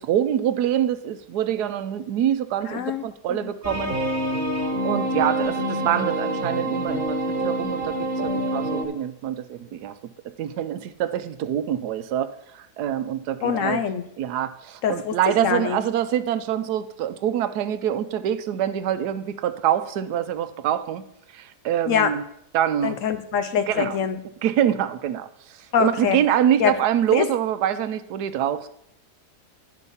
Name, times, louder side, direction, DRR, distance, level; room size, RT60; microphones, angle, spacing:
voice 1, 0.0-3.9 4.8-7.2 7.4-8.0 8.2-9.9 10.4-12.3 12.8-13.8 14.2-21.0 21.3-22.2 22.5-23.0 23.7-24.0 24.4-25.3 25.8-28.7, right 10 dB, 85° right, 12 dB, 1.2 m, -25 dB
voice 2, 2.7-3.0 13.4-14.1 14.8-15.1 15.4-15.8 21.9-22.1 22.8-24.2 25.7-26.2 26.6-26.8 27.1-27.3, left 7 dB, 70° left, 10 dB, 0.8 m, -23 dB
sound 1, 3.6-8.9, right 1 dB, 35° right, 1.5 m, -26 dB
10.5 x 5.4 x 5.5 m, 0.75 s
omnidirectional pair, 1.7 m